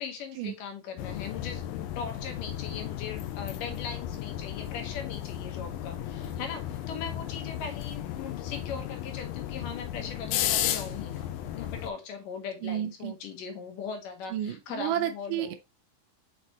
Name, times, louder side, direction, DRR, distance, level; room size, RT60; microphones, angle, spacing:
voice 1, 0.0-11.2 11.6-15.6, left 6 dB, 70° left, 2.7 m, -39 dB
sound 1, 1.0-11.9, left 11 dB, 85° left, 2.4 m, -34 dB
voice 2, 12.6-13.1 14.3-15.5, right 11 dB, 80° right, 1.9 m, -31 dB
6.5 x 5.8 x 3.0 m
omnidirectional pair, 4.2 m